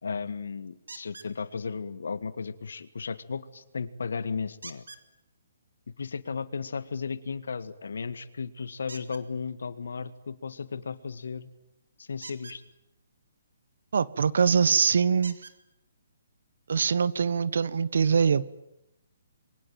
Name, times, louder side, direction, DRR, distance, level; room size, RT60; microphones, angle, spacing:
voice 1, 0.0-4.8 6.0-11.5 12.0-12.6, left 5 dB, 75° left, 13 dB, 1.9 m, -35 dB
sound 1, 0.9-1.3 4.6-5.0 8.9-9.2 12.1-12.6 14.3-14.4 15.2-15.6 16.6-16.7 17.1-17.2, right 4 dB, 85° right, 2.7 m, -44 dB
voice 2, 13.9-15.4 16.7-18.5, right 6 dB, 70° right, 18 dB, 1.2 m, -23 dB
27.0 x 23.5 x 9.1 m, 0.85 s
hypercardioid pair, 145°, 0 cm